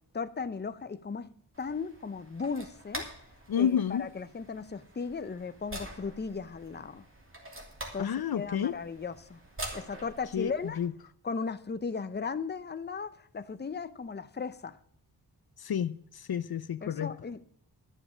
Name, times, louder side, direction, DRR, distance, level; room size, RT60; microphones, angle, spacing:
voice 1, 0.1-1.3 1.6-3.1 3.6-7.0 7.9-9.4 9.7-10.8 11.2-14.8 16.8-17.4, left 5 dB, 25° left, 0.6 m, -36 dB
sound 1, 1.5-10.9, right 1 dB, 30° right, 2.9 m, -45 dB
voice 2, 3.5-4.1 8.0-8.7 10.3-10.5 10.8-10.9 15.6-17.1, left 8 dB, 65° left, 0.6 m, -30 dB
12.0 x 7.1 x 7.2 m
wide cardioid pair, 120°, 40 cm